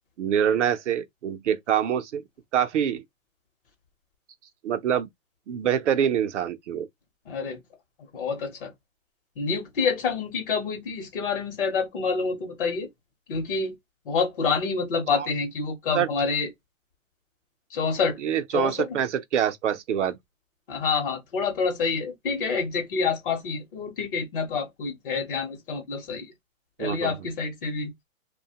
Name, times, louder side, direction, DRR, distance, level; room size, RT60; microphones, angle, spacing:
voice 1, 0.2-2.2 2.5-3.0 4.6-5.1 5.5-6.9 15.2-15.3 15.9-16.1 18.2-20.2 26.8-27.2, right 9 dB, 60° right, 0.6 m, -25 dB
voice 2, 7.3-7.6 8.1-8.7 9.4-12.9 13.3-13.7 14.1-16.5 17.7-18.2 18.5-18.9 20.7-26.3 26.8-27.9, left 5 dB, 40° left, 0.8 m, -27 dB
2.7 x 2.2 x 2.8 m
hypercardioid pair, 160°, 42 cm